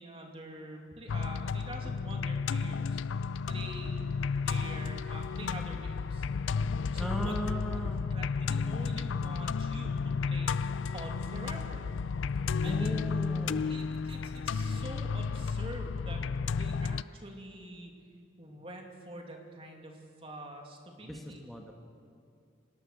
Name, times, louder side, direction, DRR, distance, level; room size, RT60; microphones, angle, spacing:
voice 1, 0.0-3.0 3.5-6.3 6.9-7.3 7.7-7.9 8.1-11.8 12.6-13.1 13.6-16.2 16.5-17.9 18.4-21.4, right 1 dB, 30° right, 2 dB, 2.6 m, -46 dB
sound 1, 1.1-17.0, left 5 dB, 80° left, 0.4 m, -32 dB
voice 2, 7.0-8.0 12.7-13.7 21.0-21.7, equal, ahead, 1 dB, 1.7 m, -37 dB
24.5 x 18.5 x 6.6 m, 2.5 s
head